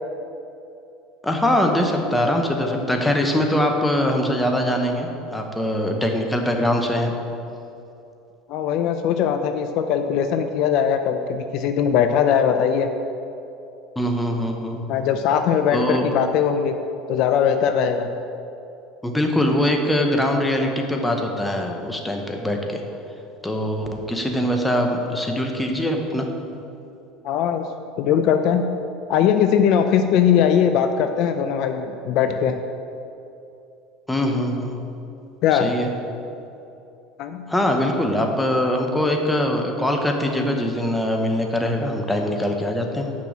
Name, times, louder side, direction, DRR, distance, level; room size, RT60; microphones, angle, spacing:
voice 1, 1.2-7.1 14.0-14.8 15.7-16.0 19.0-22.8 23.4-26.3 34.1-34.8 35.5-35.9 37.5-43.1, left 1 dB, 5° left, 2 dB, 0.8 m, -22 dB
voice 2, 8.5-12.9 14.9-16.7 17.1-18.1 27.2-27.7 28.0-28.7 29.1-32.6 35.4-35.7 37.2-37.5, left 8 dB, 55° left, 7 dB, 0.5 m, -20 dB
6.0 x 6.0 x 7.2 m, 2.7 s
supercardioid pair, 140°, 0 cm